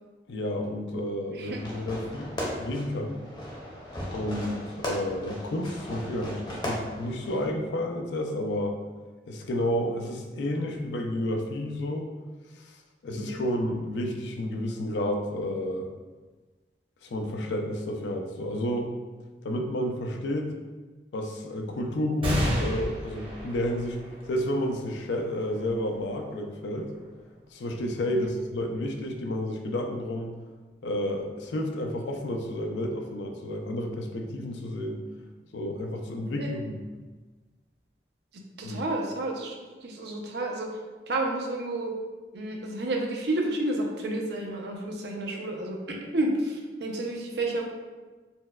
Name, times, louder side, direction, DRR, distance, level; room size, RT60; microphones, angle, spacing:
voice 1, 0.3-2.3 2.6-3.2 4.1-8.8 9.3-12.1 13.0-15.9 17.0-18.9 19.4-20.5 21.1-24.0 24.3-26.9 27.5-30.3 30.8-35.0 35.5-36.8 38.6-38.8, left 1 dB, 85° left, 3 dB, 0.4 m, -31 dB
voice 2, 1.3-1.6 13.1-13.4 28.0-28.3 36.4-36.5 38.3-39.6 39.8-40.7 41.1-41.9 42.3-47.6, right 2 dB, 65° right, 0 dB, 0.5 m, -31 dB
Fireworks, 1.5-7.5, equal, 25° left, 0.6 m, -37 dB
sound 1, 22.2-29.1 29.7-29.8 30.9-31.5, equal, 30° right, 0.8 m, -35 dB
4.2 x 2.1 x 2.3 m, 1.3 s
head